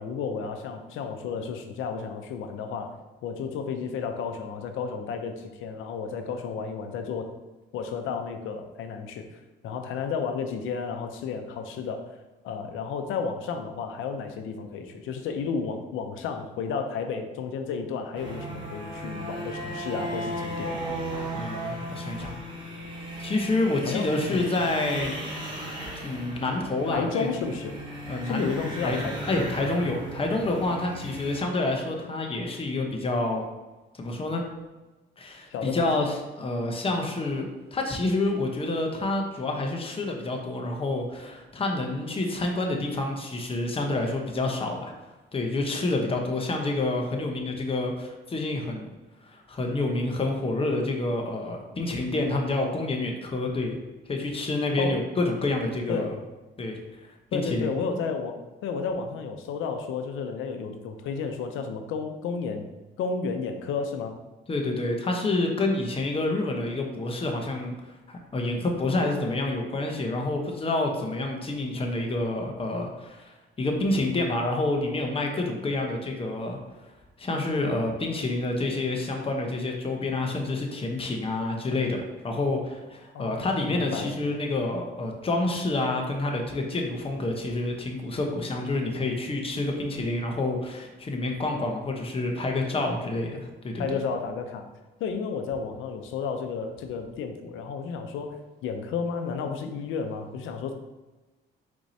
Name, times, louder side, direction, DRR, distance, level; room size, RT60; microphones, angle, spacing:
voice 1, 0.0-2.9 3.2-7.3 7.7-9.2 9.6-12.0 12.4-20.7 23.8-24.5 26.9-27.7 28.2-29.1 35.5-36.1 54.8-55.0 55.9-56.1 57.3-62.7 63.0-64.2 83.1-84.1 93.8-94.7 95.0-100.7, left 5 dB, 90° left, 6 dB, 0.6 m, -32 dB
sound 1, 18.1-31.4, right 1 dB, 25° right, 1.4 m, -36 dB
voice 2, 21.3-22.3 23.2-25.1 26.0-27.3 28.1-28.5 28.8-29.0 29.3-33.4 34.0-34.4 35.2-37.4 37.7-44.9 45.3-48.9 49.3-53.8 54.1-56.1 56.6-56.8 57.3-57.7 64.5-76.6 77.2-93.8, left 2 dB, 30° left, 2 dB, 0.9 m, -28 dB
4.6 x 4.2 x 2.7 m, 1.2 s
cardioid pair, 90°, 20 cm